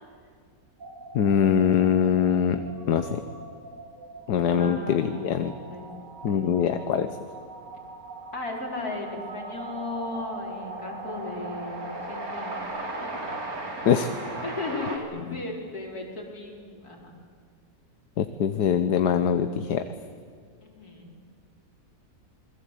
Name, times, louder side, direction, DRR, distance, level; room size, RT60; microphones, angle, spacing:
sound 1, 0.8-12.6, right 2 dB, 90° right, 3.8 m, -42 dB
voice 1, 1.1-2.6 2.9-3.2 4.3-5.5 6.2-7.1 13.8-14.1 15.3-15.4 18.2-19.8, left 8 dB, 80° left, 9 dB, 1.5 m, -23 dB
voice 2, 4.5-5.9 6.3-6.5 8.3-12.5 13.0-13.2 14.4-17.1 20.6-21.1, left 2 dB, 60° left, -1 dB, 5.3 m, -36 dB
Train, 7.6-7.7 7.8-15.0, right 2 dB, 60° right, 3.6 m, -37 dB
27.5 x 21.5 x 8.4 m, 2.1 s
omnidirectional pair, 1.8 m